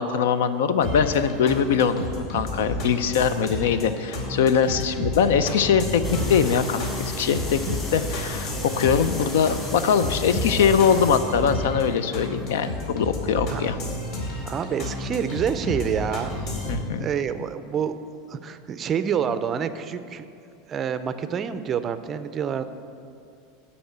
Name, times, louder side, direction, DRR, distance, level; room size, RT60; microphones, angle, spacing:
voice 1, 0.0-7.6 7.9-13.8 16.7-17.1, left 7 dB, 85° left, 12 dB, 0.6 m, -22 dB
sound 1, 0.8-16.8, left 1 dB, 50° left, 2.1 m, -31 dB
sound 2, 6.0-11.2, left 2 dB, 25° left, 2.0 m, -36 dB
voice 2, 14.5-16.5 17.0-18.0 18.3-20.3 20.7-22.7, right 7 dB, 25° right, 11 dB, 0.4 m, -27 dB
12.5 x 4.2 x 7.9 m, 2.6 s
supercardioid pair, 160°, 0 cm